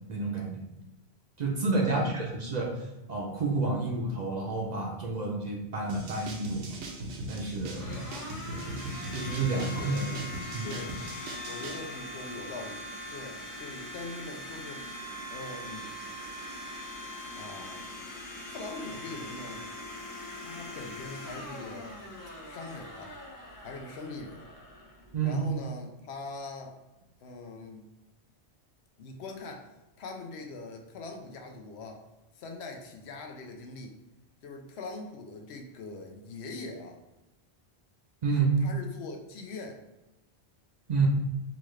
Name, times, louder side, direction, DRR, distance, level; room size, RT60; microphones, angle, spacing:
voice 1, 0.1-0.6 1.4-6.8 7.3-7.9 8.5-8.6 9.1-10.1 10.5-10.7 25.1-25.4 38.2-38.6 40.9-41.1, right 3 dB, 50° right, -1 dB, 0.6 m, -29 dB
voice 2, 1.8-2.1 7.8-8.2 9.5-10.2 10.6-11.0 11.4-14.8 15.3-15.9 17.3-17.8 18.5-19.7 20.4-22.0 22.4-23.1 23.6-24.5 25.2-26.8 27.2-27.9 29.0-29.7 30.0-32.0 32.3-34.0 34.4-37.0 38.6-39.8, left 3 dB, 80° left, 3 dB, 0.9 m, -42 dB
sound 1, 5.9-11.8, right 1 dB, 85° right, 0.9 m, -39 dB
Domestic sounds home sounds, 6.8-25.6, left 1 dB, 25° left, 0.5 m, -42 dB
3.9 x 2.4 x 3.1 m, 1.0 s
omnidirectional pair, 1.1 m